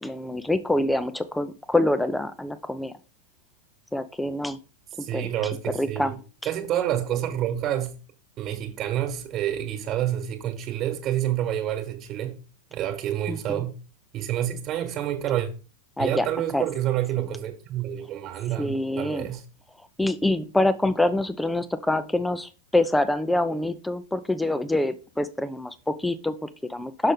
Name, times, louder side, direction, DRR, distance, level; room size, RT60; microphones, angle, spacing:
voice 1, 0.0-2.9 3.9-4.6 5.0-5.3 5.7-6.2 13.3-13.6 16.0-16.3 16.5-16.6 18.6-19.3 20.0-27.1, left 1 dB, 5° left, 0.6 m, -25 dB
voice 2, 5.0-6.1 6.4-8.0 8.4-12.4 12.7-13.7 14.1-15.5 16.0-19.4, right 11 dB, 35° right, 1.6 m, -28 dB
6.3 x 6.3 x 4.0 m
figure-of-eight pair, 90°, 0 cm